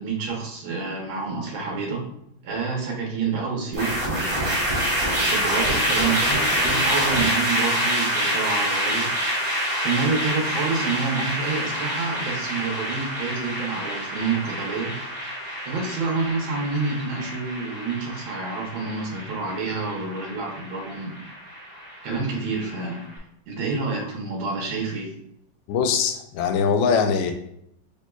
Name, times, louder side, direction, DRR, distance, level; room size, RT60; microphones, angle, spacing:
voice 1, 0.0-2.1 2.4-4.4 5.0-9.1 9.8-15.0 15.7-21.2 22.0-23.0 23.5-25.1, right 4 dB, 75° right, 1.6 m, -28 dB
sound 1, 3.7-23.0, equal, 35° right, 1.0 m, -27 dB
voice 2, 25.7-27.3, left 6 dB, 75° left, 1.2 m, -22 dB
6.5 x 3.0 x 2.2 m
omnidirectional pair, 2.2 m